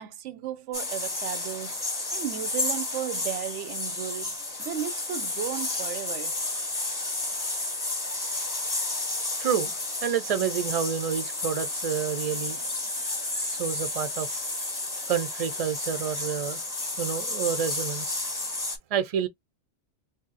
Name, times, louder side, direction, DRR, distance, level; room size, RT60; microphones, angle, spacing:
voice 1, 0.0-1.8 2.1-6.3, right 11 dB, 85° right, 0.9 m, -35 dB
sound 1, 0.7-18.8, left 2 dB, 20° left, 0.7 m, -32 dB
voice 2, 9.4-12.6 13.5-14.4 15.1-16.6 17.0-18.2 18.9-19.3, right 8 dB, 45° right, 0.5 m, -29 dB
2.7 x 2.0 x 3.9 m
omnidirectional pair, 1.2 m